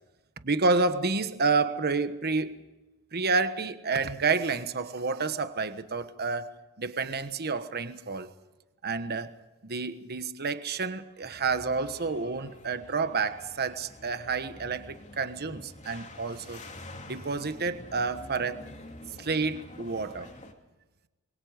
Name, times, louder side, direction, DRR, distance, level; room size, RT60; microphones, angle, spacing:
voice 1, 0.4-2.6 3.1-8.3 8.8-9.3 9.6-16.6 17.1-18.6 19.2-20.3, right 4 dB, 45° right, 1.3 m, -29 dB
sound 1, 11.2-20.5, left 1 dB, 35° left, 2.8 m, -47 dB
27.0 x 23.0 x 5.1 m
head